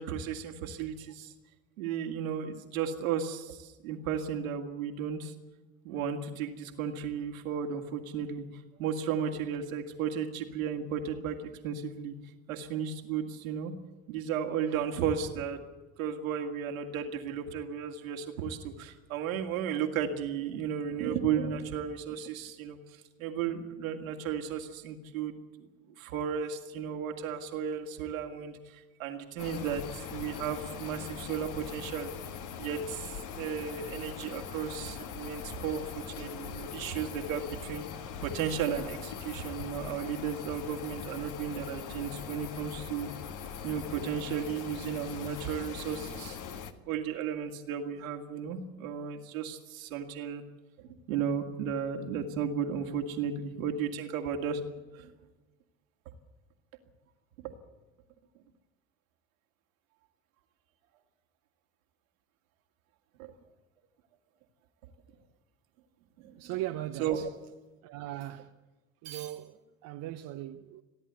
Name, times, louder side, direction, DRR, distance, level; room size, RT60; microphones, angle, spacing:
voice 1, 0.0-1.3 1.8-5.3 5.8-12.1 12.5-13.7 14.1-15.6 16.0-25.7 26.0-32.1 32.6-37.8 38.2-43.1 43.6-46.4 46.9-50.4 50.8-54.6 54.9-55.1 57.4-57.5 63.2-63.3 66.2-66.4 67.0-67.2, right 7 dB, 75° right, 2.3 m, -34 dB
sound 1, 29.4-46.7, left 7 dB, 50° left, 1.7 m, -41 dB
voice 2, 66.4-67.3 67.8-68.5 69.0-70.8, right 14 dB, 55° right, 1.0 m, -39 dB
29.5 x 11.0 x 8.2 m
hypercardioid pair, 65°, 41 cm